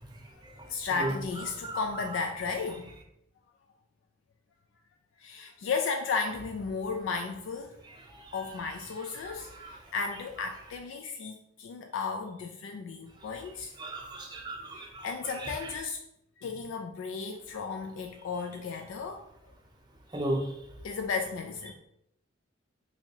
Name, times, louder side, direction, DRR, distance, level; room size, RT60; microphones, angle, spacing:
voice 1, 0.3-2.9 5.2-7.8 8.3-13.8 14.7-16.0 16.4-19.3 20.1-20.2 20.8-21.7, left 4 dB, 75° left, 4 dB, 0.3 m, -34 dB
voice 2, 13.8-15.0 15.4-15.5 20.1-20.5, right 1 dB, 25° right, 0 dB, 0.7 m, -34 dB
2.9 x 2.7 x 4.4 m, 0.76 s
head